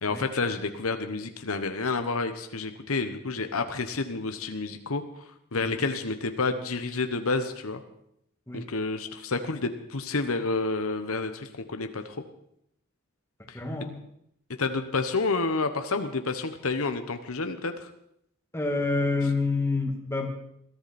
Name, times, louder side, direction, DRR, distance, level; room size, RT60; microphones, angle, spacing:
voice 1, 0.0-7.8 8.5-12.2 13.5-13.6 14.6-17.9, left 3 dB, 75° left, 8 dB, 1.2 m, -29 dB
voice 2, 13.5-13.9 18.5-20.3, left 3 dB, 10° left, 2 dB, 2.2 m, -28 dB
21.5 x 14.0 x 4.3 m, 0.73 s
head